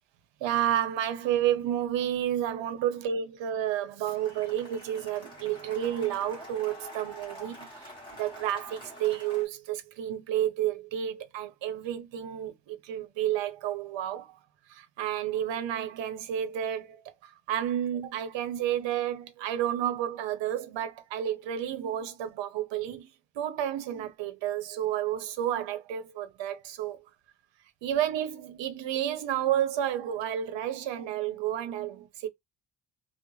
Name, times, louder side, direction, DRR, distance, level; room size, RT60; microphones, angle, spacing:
voice 1, 0.4-7.7 8.2-14.3 14.7-23.1 23.4-27.0 27.8-32.3, right 11 dB, 70° right, 0.7 m, -31 dB
Cheering / Applause, 4.1-9.5, equal, 10° left, 1.1 m, -46 dB
2.4 x 2.1 x 3.0 m
cardioid pair, 175°, 46 cm